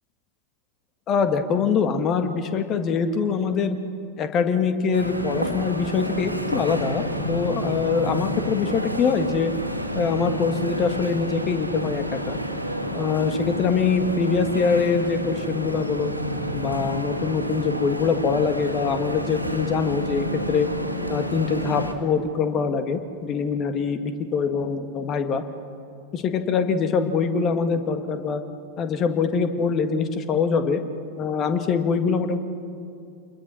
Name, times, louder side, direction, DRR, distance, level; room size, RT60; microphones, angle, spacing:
voice 1, 1.1-3.8 4.2-9.5 9.9-12.4 12.9-16.1 16.5-20.7 21.1-25.4 26.1-28.4 28.8-30.8 31.1-32.4, left 5 dB, 30° left, 8 dB, 1.8 m, -24 dB
sound 1, 4.9-21.9, equal, 90° right, 2.1 m, -29 dB
29.0 x 21.5 x 6.4 m, 2.6 s
figure-of-eight pair, 90°, 0 cm